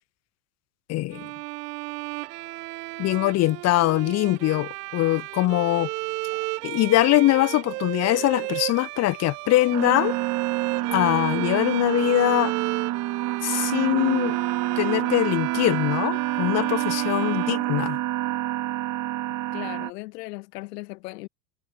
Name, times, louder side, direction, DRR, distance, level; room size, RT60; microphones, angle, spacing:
voice 1, 0.9-1.3 3.0-5.9 6.6-10.2 10.9-12.5 13.4-14.4 14.8-18.0, left 17 dB, 30° left, 0.6 m, -22 dB
Bowed string instrument, 1.1-18.3, right 25 dB, 65° right, 2.0 m, -34 dB
sound 1, 1.9-15.3, right 3 dB, 15° right, 5.5 m, -55 dB
sound 2, 9.7-19.9, right 15 dB, 35° right, 1.3 m, -27 dB
voice 2, 17.3-17.9 19.3-21.3, left 22 dB, 70° left, 1.1 m, -39 dB
hypercardioid pair, 100°, 50 cm